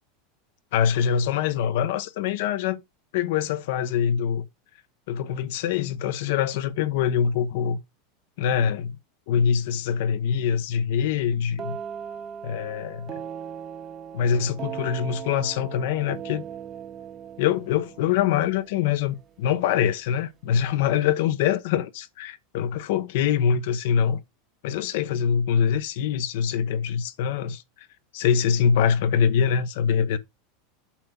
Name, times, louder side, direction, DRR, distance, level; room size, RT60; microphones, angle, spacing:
voice 1, 0.7-2.8 3.1-4.4 5.1-7.8 8.4-8.9 9.3-11.8 12.4-13.1 14.1-16.4 17.4-24.2 24.6-27.6 28.1-30.2, left 8 dB, 70° left, 1.0 m, -24 dB
sound 1, 11.6-19.3, right 8 dB, 30° right, 0.9 m, -38 dB
8.7 x 5.8 x 3.8 m
supercardioid pair, 130°, 0 cm